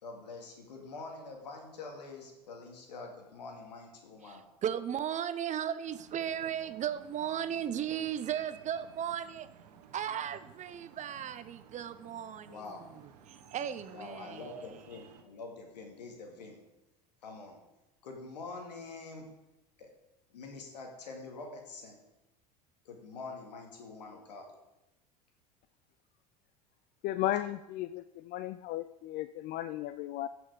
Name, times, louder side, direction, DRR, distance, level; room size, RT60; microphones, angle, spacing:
voice 1, 0.0-4.4 12.5-12.9 13.9-16.6 17.2-17.6 18.0-19.3 19.8-19.9 20.3-22.0 22.8-24.5, left 3 dB, 85° left, 2 dB, 2.4 m, -45 dB
voice 2, 4.2-9.5 9.9-14.8, right 9 dB, 35° right, 13 dB, 0.8 m, -36 dB
sound 1, 5.8-15.2, right 8 dB, 75° right, 1.2 m, -56 dB
voice 3, 27.0-30.3, left 14 dB, 50° left, 13 dB, 0.4 m, -35 dB
15.0 x 6.2 x 5.1 m, 0.99 s
hypercardioid pair, 85°, 21 cm